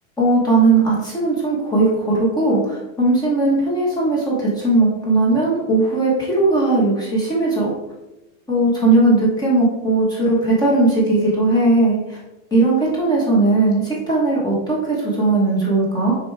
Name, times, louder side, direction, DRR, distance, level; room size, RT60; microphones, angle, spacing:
voice 1, 0.2-7.7 8.5-12.2 12.5-16.1, right 2 dB, 10° left, -5 dB, 1.4 m, -18 dB
6.4 x 4.7 x 3.4 m, 0.96 s
supercardioid pair, 170°, 39 cm